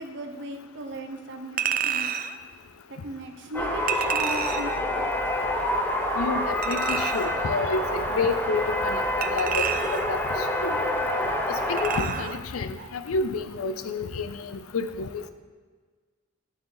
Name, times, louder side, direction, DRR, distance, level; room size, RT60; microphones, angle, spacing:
voice 1, 0.0-2.2 2.9-5.1 11.2-11.4, right 1 dB, 60° right, 6 dB, 0.8 m, -37 dB
Chink clink, 1.6-2.4 3.9-4.8 6.6-7.4 9.2-10.2 11.8-12.4 12.8-12.9, right 8 dB, 40° right, 0.3 m, -29 dB
sound 1, 3.5-12.0, left 1 dB, 10° left, 0.7 m, -27 dB
voice 2, 6.2-9.0 9.3-9.7 9.9-10.2 10.6-10.8 11.7-15.3, left 4 dB, 85° left, 11 dB, 0.5 m, -29 dB
7.0 x 6.6 x 3.9 m, 1.5 s
head